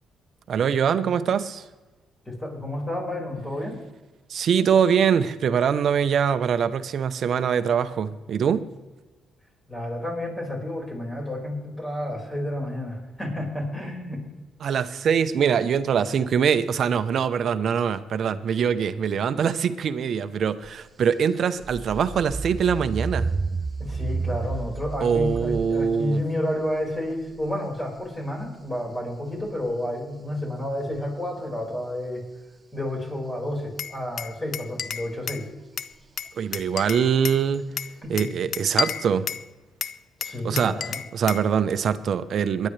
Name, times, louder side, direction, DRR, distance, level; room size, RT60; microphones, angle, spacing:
voice 1, 0.5-1.6 4.3-8.7 14.6-23.3 25.0-26.2 36.4-37.6 38.1-39.3 40.4-42.7, right 7 dB, 60° right, 12 dB, 0.8 m, -23 dB
voice 2, 2.3-3.8 9.7-14.2 23.8-32.3 32.7-35.5 38.0-38.4 40.2-41.0, left 1 dB, 15° left, -1 dB, 5.2 m, -30 dB
sound 1, 20.6-20.8 21.3-26.0 27.1-27.5 29.7-29.8 37.0-37.1 37.5-37.6 38.1-38.2, right 4 dB, 30° right, 0.4 m, -31 dB
Glass, 33.8-35.5 35.8-37.4 37.8-39.5 39.8-41.5, left 8 dB, 65° left, 0.5 m, -31 dB
22.5 x 10.5 x 3.3 m, 1.2 s
cardioid pair, 90°, 0 cm